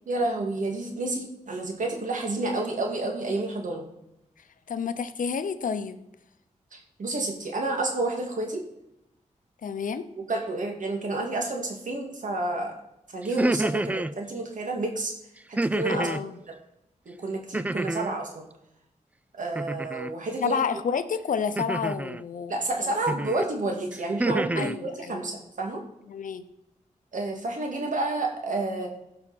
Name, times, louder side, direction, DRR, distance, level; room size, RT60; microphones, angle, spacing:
voice 1, 0.1-3.8 6.7-8.6 10.2-12.7 13.1-15.1 15.5-16.1 17.1-18.5 19.4-20.6 22.5-25.8 27.1-28.9, right 2 dB, 75° right, 1 dB, 2.3 m, -30 dB
voice 2, 4.7-6.0 9.6-10.1 15.9-16.4 20.4-22.9 24.5-25.3 26.1-26.5, left 6 dB, 90° left, 11 dB, 0.7 m, -30 dB
sound 1, 13.2-14.1 15.6-16.2 17.5-18.2 19.5-20.1 21.6-22.2 23.1-23.4 23.9-24.7, right 2 dB, 10° right, 0.3 m, -28 dB
15.5 x 5.7 x 4.2 m, 0.83 s
wide cardioid pair, 95°, 13 cm